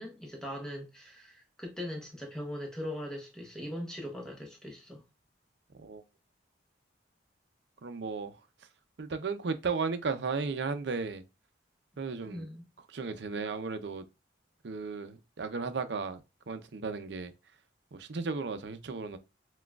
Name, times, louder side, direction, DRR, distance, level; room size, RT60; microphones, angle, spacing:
voice 1, 0.0-5.0 12.2-12.6, left 1 dB, 5° left, 0.8 m, -40 dB
voice 2, 7.8-8.4 9.0-11.2 12.0-12.5 12.9-14.0 14.6-16.2 16.5-17.3 17.9-19.2, right 4 dB, 70° right, 0.5 m, -35 dB
6.0 x 2.3 x 2.3 m
head